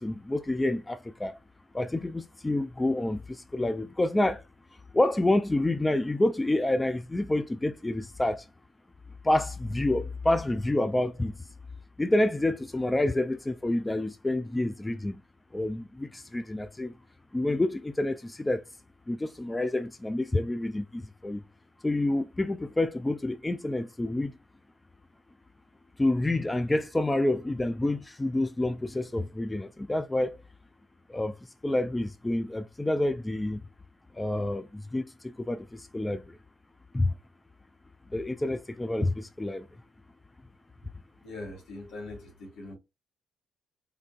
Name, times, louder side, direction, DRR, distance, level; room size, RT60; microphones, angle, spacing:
voice 1, 0.0-1.4 1.7-4.4 4.9-8.4 9.2-11.3 12.0-15.2 15.5-16.9 17.3-18.6 19.1-21.4 21.8-24.3 26.0-30.4 31.1-31.3 31.6-33.6 34.2-36.4 36.9-37.1 38.1-39.7, left 1 dB, 15° left, 0.4 m, -28 dB
voice 2, 41.2-42.8, left 2 dB, 75° left, 2.2 m, -41 dB
3.7 x 3.3 x 2.4 m
supercardioid pair, 65°, 0 cm